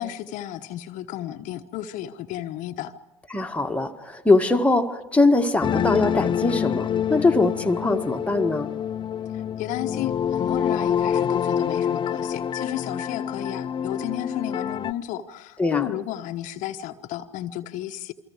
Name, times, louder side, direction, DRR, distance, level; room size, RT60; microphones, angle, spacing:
voice 1, 0.0-2.9 9.3-18.1, left 13 dB, 50° left, 1.0 m, -33 dB
voice 2, 3.3-8.7 15.6-15.9, left 2 dB, 10° left, 1.7 m, -22 dB
sound 1, 5.6-14.9, left 8 dB, 30° left, 0.8 m, -26 dB
28.5 x 24.0 x 4.8 m
hypercardioid pair, 70°, 16 cm